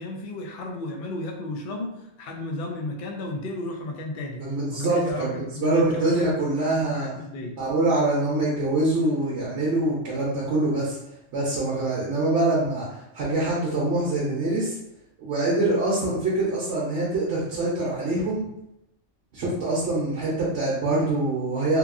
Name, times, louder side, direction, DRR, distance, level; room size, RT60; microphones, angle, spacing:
voice 1, 0.0-4.4 4.7-6.5 6.9-7.6, left 2 dB, 60° left, 1 dB, 0.5 m, -33 dB
voice 2, 4.4-7.1 7.6-11.0 11.3-14.8 15.2-18.5 19.3-21.8, right 2 dB, 65° right, -7 dB, 1.0 m, -24 dB
2.9 x 2.4 x 2.4 m, 0.80 s
omnidirectional pair, 1.3 m